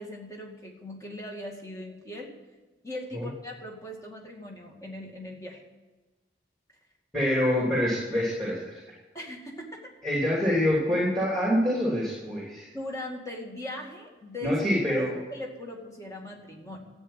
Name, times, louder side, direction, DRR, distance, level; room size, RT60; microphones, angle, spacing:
voice 1, 0.0-2.4 2.8-5.6 9.1-9.9 12.7-14.5 14.9-16.8, left 1 dB, 20° left, 0 dB, 2.1 m, -39 dB
voice 2, 7.1-8.8 10.0-12.7 14.4-15.1, equal, 5° left, -4 dB, 3.0 m, -26 dB
13.0 x 8.8 x 8.9 m, 1.2 s
head